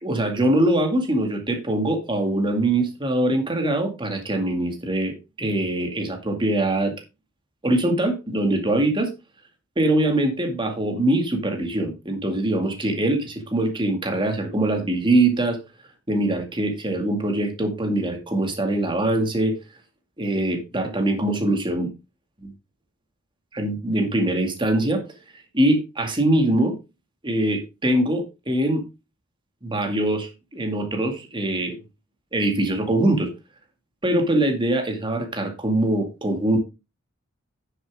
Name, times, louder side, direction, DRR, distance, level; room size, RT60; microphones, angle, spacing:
voice 1, 0.0-6.9 7.6-9.1 9.8-15.6 16.1-19.6 20.2-21.9 23.5-25.0 25.5-26.8 27.2-28.8 29.6-31.8 32.3-33.3 34.0-36.6, right 1 dB, 25° right, 4 dB, 2.1 m, -23 dB
9.7 x 7.6 x 3.6 m, 0.26 s
head